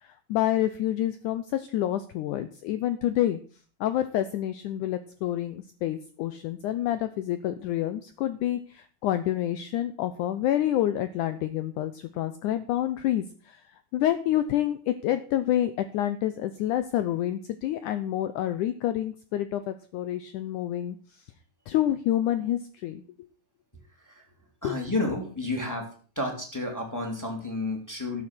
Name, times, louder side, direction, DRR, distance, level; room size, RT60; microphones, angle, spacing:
voice 1, 0.0-3.4 3.8-13.6 13.9-21.2 21.7-23.0 24.6-24.8, left 12 dB, 80° left, 11 dB, 1.8 m, -28 dB
voice 2, 24.6-25.9 26.2-28.2, left 2 dB, 5° left, 2 dB, 2.2 m, -31 dB
12.5 x 7.6 x 6.1 m, 0.43 s
omnidirectional pair, 4.3 m